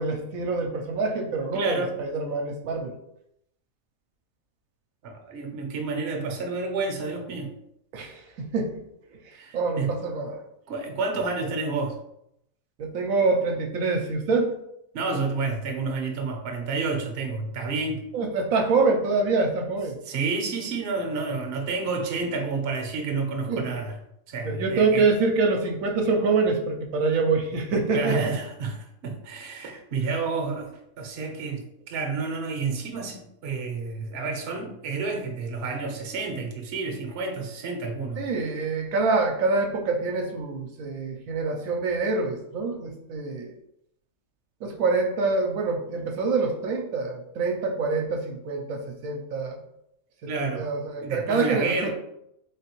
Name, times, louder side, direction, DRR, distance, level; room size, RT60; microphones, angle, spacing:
voice 1, 0.0-2.9 7.9-8.9 9.5-10.4 12.8-14.6 18.1-20.0 23.5-23.7 24.4-28.3 38.2-43.5 44.6-49.6 50.2-50.3 50.6-51.9, right 3 dB, 80° right, 2 dB, 1.0 m, -25 dB
voice 2, 1.5-1.9 5.0-7.5 9.3-9.9 10.7-12.0 14.9-18.1 20.0-24.0 24.3-25.1 27.9-38.3 50.2-50.7 51.0-51.9, right 4 dB, 55° right, 3 dB, 0.9 m, -30 dB
3.9 x 3.4 x 2.9 m, 0.80 s
omnidirectional pair, 1.4 m